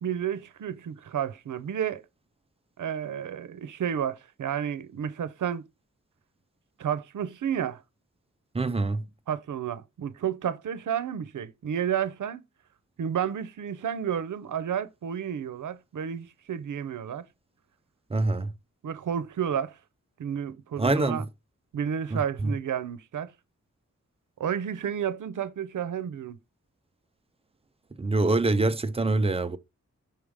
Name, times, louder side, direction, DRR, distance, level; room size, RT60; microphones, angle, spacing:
voice 1, 0.0-2.0 2.8-5.6 6.8-7.8 9.3-12.4 13.0-17.3 18.8-19.8 20.2-21.3 21.7-23.3 24.4-26.4, right 8 dB, 90° right, 0.6 m, -31 dB
voice 2, 8.5-9.0 18.1-18.5 20.8-21.2 22.1-22.5 28.0-29.6, right 2 dB, 20° right, 0.4 m, -25 dB
5.9 x 3.6 x 4.8 m
wide cardioid pair, 170°, 30 cm